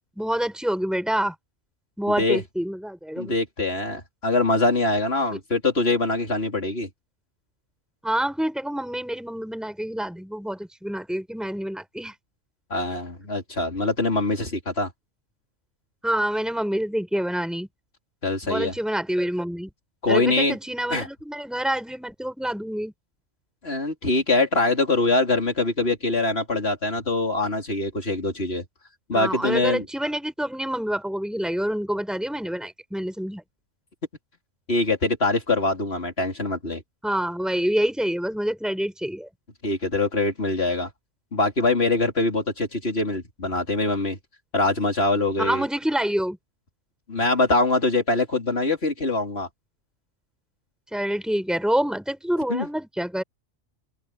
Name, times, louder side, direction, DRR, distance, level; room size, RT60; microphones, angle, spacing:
voice 1, 0.2-1.3 2.0-3.3 8.0-12.1 16.0-17.7 18.4-19.7 20.1-22.9 29.1-33.4 37.0-39.3 45.4-46.4 50.9-53.2, equal, ahead, 6.3 m, -27 dB
voice 2, 3.2-6.9 12.7-14.9 18.2-18.7 20.0-20.6 20.9-21.1 23.6-28.6 29.1-29.9 34.7-36.8 39.6-40.9 41.3-44.2 44.5-45.6 47.1-49.5 52.5-52.7, left 2 dB, 50° left, 4.2 m, -23 dB
open air
omnidirectional pair, 1.4 m